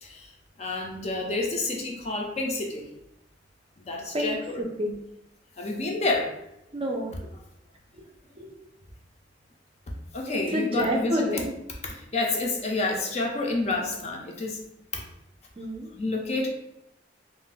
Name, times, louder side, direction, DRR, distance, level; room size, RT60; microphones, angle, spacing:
voice 1, 0.6-2.8 3.8-4.6 5.6-6.3 10.1-11.4 11.8-14.6 14.9-15.0 15.9-16.5, left 2 dB, 40° left, 0 dB, 0.5 m, -29 dB
voice 2, 4.1-5.0 6.7-7.1 8.4-8.5 10.3-11.5 15.6-15.9, equal, 30° right, 1 dB, 0.4 m, -29 dB
2.5 x 2.1 x 3.7 m, 0.81 s
head